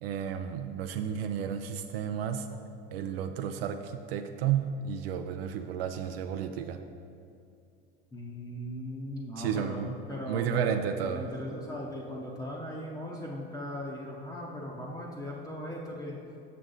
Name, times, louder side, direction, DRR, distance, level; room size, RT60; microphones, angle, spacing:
voice 1, 0.0-2.5 2.9-6.8 9.4-9.9 10.3-11.3, right 8 dB, 85° right, 6 dB, 0.5 m, -32 dB
voice 2, 8.1-16.2, equal, 10° left, -3 dB, 0.7 m, -38 dB
6.8 x 6.2 x 3.8 m, 2.5 s
supercardioid pair, 120°, 29 cm